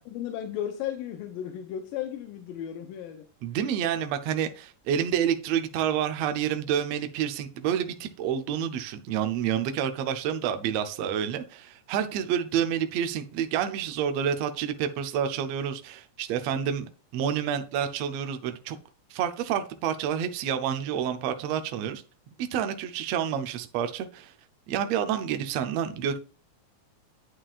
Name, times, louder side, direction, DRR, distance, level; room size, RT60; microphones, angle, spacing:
voice 1, 0.1-3.3, left 10 dB, 85° left, 2.4 m, -34 dB
voice 2, 3.4-18.8 19.1-22.0 22.4-24.3 24.7-26.2, right 9 dB, 85° right, 1.4 m, -29 dB
8.9 x 7.4 x 2.4 m
omnidirectional pair, 4.0 m